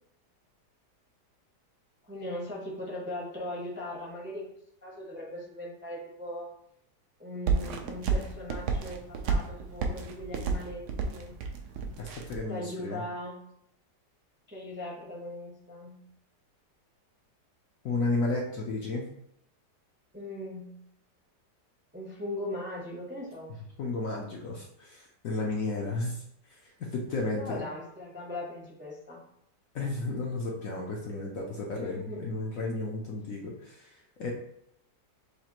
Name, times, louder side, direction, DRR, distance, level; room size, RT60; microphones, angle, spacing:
voice 1, 2.0-4.5 4.8-6.5 7.2-11.4 12.5-13.4 14.5-16.0 20.1-20.8 21.9-23.5 27.2-29.2 31.7-32.4, left 1 dB, 10° right, -3 dB, 0.6 m, -39 dB
sound 1, 7.5-12.4, right 5 dB, 75° right, 1.1 m, -31 dB
voice 2, 12.0-13.0 17.8-19.0 23.8-26.2 26.6-27.6 29.7-34.3, left 2 dB, 60° left, -2 dB, 0.9 m, -33 dB
6.5 x 2.4 x 2.9 m, 0.74 s
omnidirectional pair, 1.9 m